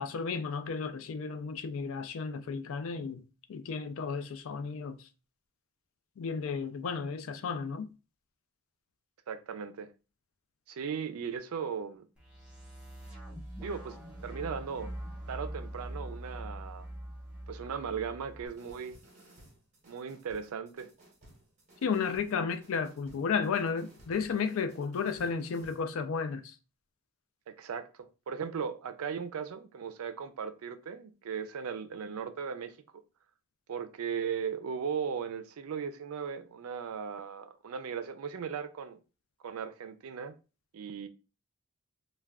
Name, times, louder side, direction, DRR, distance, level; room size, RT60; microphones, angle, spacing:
voice 1, 0.0-3.2 3.5-5.1 6.2-7.9 21.8-26.6, left 5 dB, 70° left, 0.3 m, -33 dB
voice 2, 9.3-9.9 10.7-12.1 13.6-14.9 15.3-16.9 17.5-19.0 19.9-20.9 27.5-32.7 33.7-39.0 39.4-40.3 40.7-41.1, right 6 dB, 80° right, 0.4 m, -37 dB
sound 1, 12.2-18.4, right 1 dB, 5° right, 0.7 m, -43 dB
sound 2, 18.5-25.8, right 1 dB, 35° right, 0.9 m, -58 dB
2.3 x 2.2 x 3.4 m
head